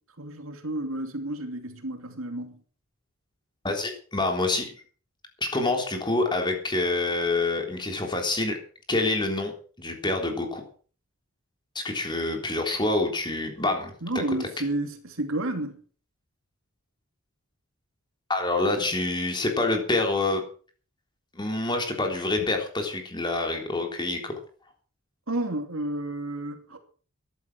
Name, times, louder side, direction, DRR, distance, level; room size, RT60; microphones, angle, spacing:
voice 1, 0.2-2.6 14.0-15.8 18.8-18.9 22.4-22.5 25.3-26.8, right 1 dB, 70° right, 2.8 m, -31 dB
voice 2, 3.6-4.7 5.4-8.6 8.9-10.6 11.8-13.9 18.3-20.4 21.3-24.3, left 2 dB, 20° left, 3.6 m, -27 dB
14.0 x 11.5 x 6.2 m
head